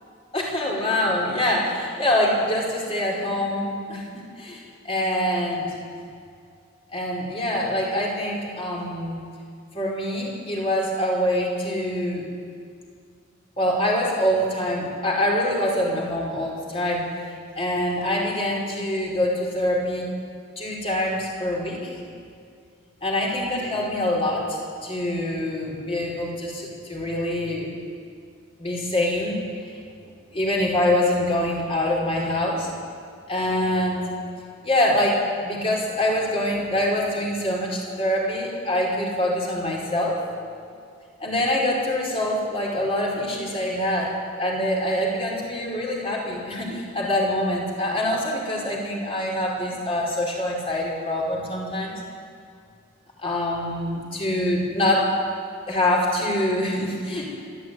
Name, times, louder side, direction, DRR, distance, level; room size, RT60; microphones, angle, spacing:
voice 1, 0.3-5.7 6.9-9.2 9.7-12.3 13.6-17.0 17.5-20.1 20.6-22.0 23.0-27.7 28.6-29.4 30.3-32.7 33.3-34.2 34.6-40.2 41.2-52.0 53.2-55.1 55.7-57.3, left 1 dB, 30° left, -3 dB, 5.0 m, -25 dB
26.0 x 13.0 x 9.6 m, 2.3 s
head